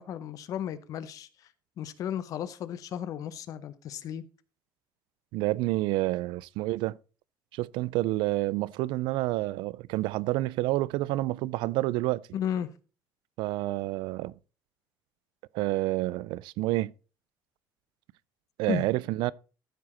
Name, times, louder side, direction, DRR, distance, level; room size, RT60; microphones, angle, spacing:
voice 1, 0.0-1.5 1.8-4.3 12.3-12.7 18.7-18.9, left 9 dB, 45° left, 0.7 m, -34 dB
voice 2, 5.3-7.0 7.5-12.2 13.4-14.4 15.5-16.9 18.6-19.3, right 18 dB, 70° right, 0.3 m, -29 dB
13.5 x 4.8 x 4.3 m
cardioid pair, 170°, 8 cm